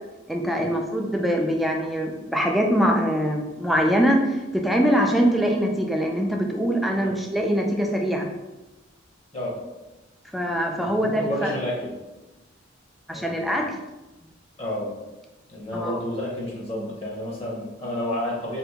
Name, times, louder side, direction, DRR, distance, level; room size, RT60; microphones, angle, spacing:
voice 1, 0.3-8.3 10.3-11.5 13.1-13.7 15.7-16.0, equal, ahead, 1 dB, 0.3 m, -23 dB
voice 2, 10.8-11.9 13.1-13.6 14.6-14.9 15.5-18.6, left 1 dB, 30° left, -4 dB, 0.7 m, -30 dB
2.8 x 2.5 x 3.5 m, 1.1 s
head